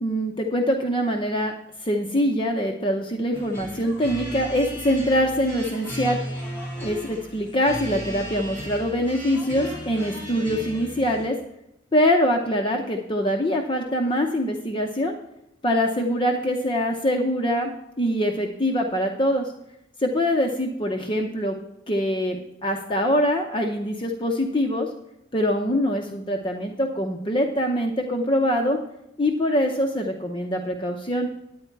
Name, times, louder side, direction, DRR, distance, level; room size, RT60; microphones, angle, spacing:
voice 1, 0.0-1.5 1.8-6.2 6.8-11.4 11.9-15.2 15.6-19.5 20.0-21.6 21.9-24.9 25.3-28.8 29.2-31.3, equal, 25° left, 2 dB, 0.7 m, -24 dB
sound 1, 3.3-11.3, equal, 10° left, 2.9 m, -35 dB
9.4 x 9.2 x 4.5 m, 0.84 s
head